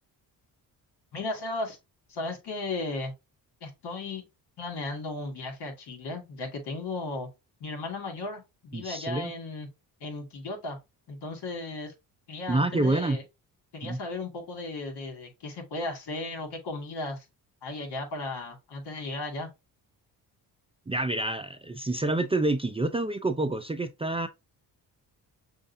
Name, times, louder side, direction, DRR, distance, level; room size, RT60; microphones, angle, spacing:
voice 1, 1.1-1.8 2.1-3.1 3.6-4.2 4.6-7.3 7.6-9.7 10.0-10.8 11.1-11.9 12.3-13.2 13.7-17.2 17.6-19.5, left 2 dB, 70° left, 2.2 m, -35 dB
voice 2, 8.7-9.3 12.5-13.2 13.8-14.0 20.9-24.3, right 2 dB, 15° right, 0.5 m, -27 dB
6.3 x 2.6 x 2.6 m
cardioid pair, 90°, 41 cm